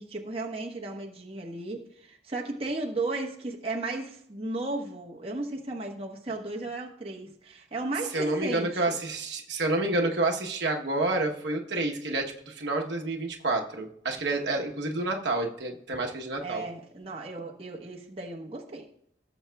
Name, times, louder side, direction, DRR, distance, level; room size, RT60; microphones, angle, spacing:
voice 1, 0.0-9.0 16.4-18.9, right 2 dB, 30° right, 0 dB, 1.1 m, -35 dB
voice 2, 8.1-16.6, right 2 dB, 75° right, 1 dB, 1.0 m, -29 dB
17.5 x 7.1 x 2.3 m, 0.70 s
head